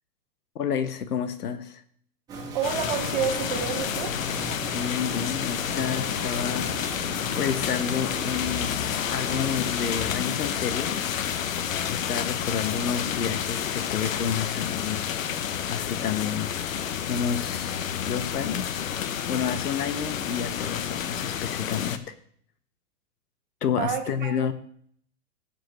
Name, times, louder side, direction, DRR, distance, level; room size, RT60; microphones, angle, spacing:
voice 1, 0.5-1.8 4.7-6.7 7.1-11.3 11.9-15.2 15.7-16.5 17.1-18.9 19.3-22.1 23.6-24.5, left 7 dB, 90° left, 11 dB, 1.3 m, -30 dB
sound 1, 2.3-10.1, right 4 dB, 10° right, 1.7 m, -39 dB
voice 2, 2.5-4.1 12.5-12.6 23.8-24.5, right 8 dB, 30° right, 5 dB, 1.1 m, -29 dB
sound 2, 2.6-22.0, left 9 dB, 60° left, 0.9 m, -30 dB
17.0 x 7.5 x 3.1 m, 0.62 s
hypercardioid pair, 170°, 45 cm